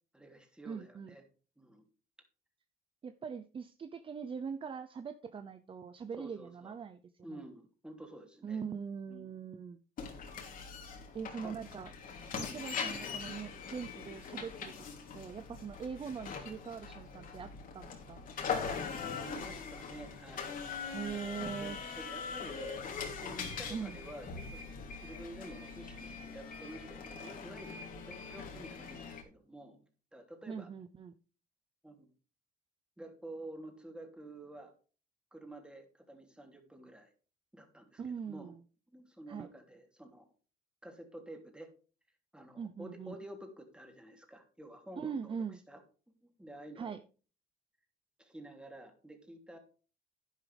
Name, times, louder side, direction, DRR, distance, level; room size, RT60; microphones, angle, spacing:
voice 1, 0.1-1.2 1.6-1.8 6.2-6.7 7.2-8.6 9.1-9.4 11.4-11.6 12.3-12.6 19.1-20.5 21.2-24.7 25.0-29.8 30.1-30.7 31.8-32.1 33.0-34.7 35.3-37.1 37.5-38.5 38.9-40.2 40.8-41.7 42.3-45.4 45.7-45.8 46.2-47.0 48.2-49.6, right 1 dB, 5° right, 3 dB, 3.1 m, -50 dB
voice 2, 0.6-1.1 3.0-7.4 8.4-9.8 11.1-11.9 12.4-14.7 15.1-18.2 20.9-21.8 23.7-24.0 30.5-31.1 38.0-38.6 39.3-39.5 42.6-43.2 45.0-45.6 46.8-47.0, right 6 dB, 30° right, 10 dB, 0.7 m, -42 dB
sound 1, 10.0-29.2, left 5 dB, 55° left, 3.1 m, -42 dB
11.0 x 10.5 x 3.4 m, 0.36 s
cardioid pair, 110°, 17 cm